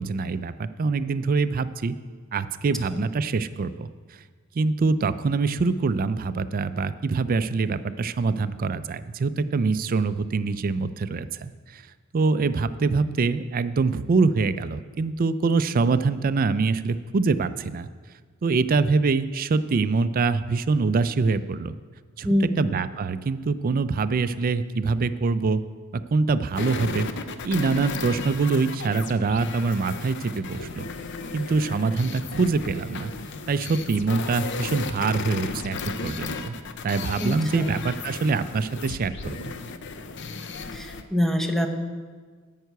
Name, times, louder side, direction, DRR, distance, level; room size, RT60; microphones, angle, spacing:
voice 1, 0.0-1.9 2.3-3.9 4.6-11.8 12.1-17.9 18.4-21.7 22.2-25.6 25.9-27.1 27.4-30.9 31.3-33.1 33.5-36.5 36.8-39.5, right 4 dB, 45° right, 13 dB, 0.4 m, -24 dB
voice 2, 22.2-22.7 37.2-37.8 40.7-41.7, equal, ahead, 4 dB, 0.7 m, -25 dB
sound 1, 26.5-41.0, left 4 dB, 60° left, 0.6 m, -35 dB
9.2 x 5.7 x 8.0 m, 1.6 s
head